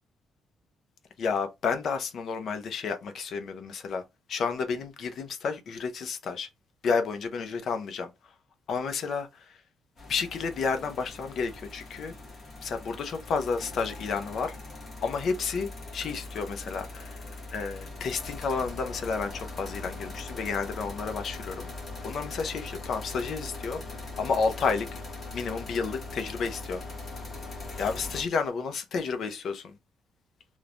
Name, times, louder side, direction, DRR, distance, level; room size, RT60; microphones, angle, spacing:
voice 1, 1.2-4.0 4.3-6.5 6.8-8.1 8.7-9.6 10.1-12.1 12.6-14.5 15.0-17.2 17.5-21.7 22.0-23.8 24.2-25.0 25.3-26.8 27.8-29.8, left 5 dB, 50° left, 0.4 m, -31 dB
sound 1, 10.0-28.2, left 2 dB, 30° left, 1.0 m, -41 dB
3.1 x 2.0 x 2.4 m
cardioid pair, 165°, 0 cm